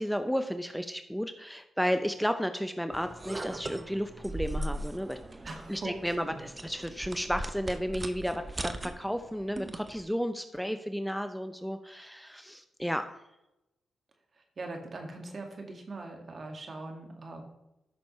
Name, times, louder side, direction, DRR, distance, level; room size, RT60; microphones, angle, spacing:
voice 1, 0.0-5.2 5.7-13.1, equal, ahead, 8 dB, 0.6 m, -33 dB
sound 1, 2.9-10.0, right 1 dB, 30° right, 0.8 m, -39 dB
voice 2, 5.4-6.4 14.3-17.4, right 2 dB, 50° right, 3 dB, 2.0 m, -41 dB
13.0 x 6.2 x 3.2 m, 0.91 s
supercardioid pair, 45°, 0 cm